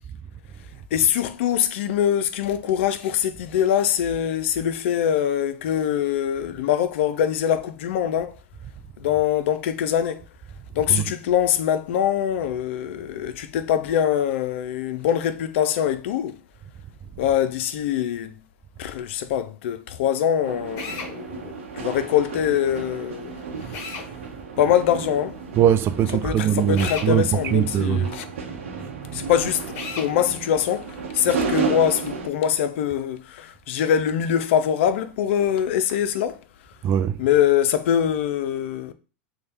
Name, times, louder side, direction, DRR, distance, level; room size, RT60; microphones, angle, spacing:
voice 1, 0.9-8.4 9.0-10.2 10.7-16.4 17.2-18.3 18.8-23.3 24.6-25.4 26.2-28.3 29.1-36.4 37.2-38.9, left 9 dB, 65° left, 0.4 m, -23 dB
sound 1, 20.4-32.3, right 5 dB, 75° right, 0.8 m, -33 dB
Drill, 20.8-21.1 23.7-24.1 26.8-27.1 29.7-30.1, left 5 dB, 50° left, 0.9 m, -33 dB
voice 2, 25.5-28.1 29.0-29.2 36.8-37.2, right 9 dB, 35° right, 0.3 m, -21 dB
3.2 x 2.2 x 4.2 m
hypercardioid pair, 95°, 7 cm